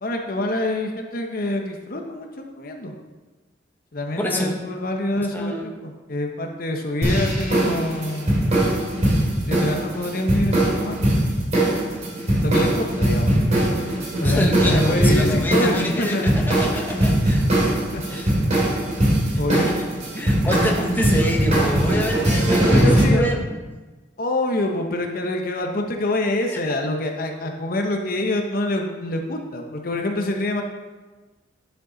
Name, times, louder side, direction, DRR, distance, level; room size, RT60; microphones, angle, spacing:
voice 1, 0.0-3.0 3.9-8.3 9.5-11.0 12.4-13.3 13.7-16.4 17.9-18.3 19.4-19.7 22.7-23.3 24.2-30.6, left 1 dB, 50° left, 3 dB, 0.9 m, -26 dB
voice 2, 4.2-4.5 5.3-5.8 14.2-17.4 18.1-18.3 19.7-19.9 20.1-23.6 26.5-26.6, equal, 10° left, 0 dB, 1.0 m, -26 dB
sound 1, 7.0-23.0, right 1 dB, 40° right, 2.5 m, -21 dB
10.5 x 6.6 x 3.9 m, 1.2 s
head